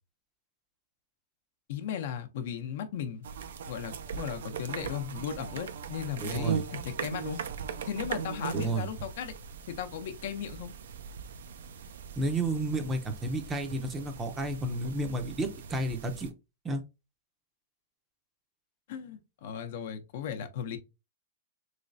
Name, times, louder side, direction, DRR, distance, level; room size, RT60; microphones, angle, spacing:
voice 1, 1.7-3.2 3.7-7.4 7.8-9.3 9.7-10.7 18.9-20.8, left 8 dB, 60° left, 0.6 m, -36 dB
sound 1, 3.2-16.3, right 6 dB, 80° right, 0.5 m, -39 dB
voice 2, 6.2-6.6 8.5-8.9 12.2-16.3 16.6-16.8, right 2 dB, 15° right, 0.6 m, -31 dB
3.2 x 3.1 x 2.6 m
hypercardioid pair, 145°, 0 cm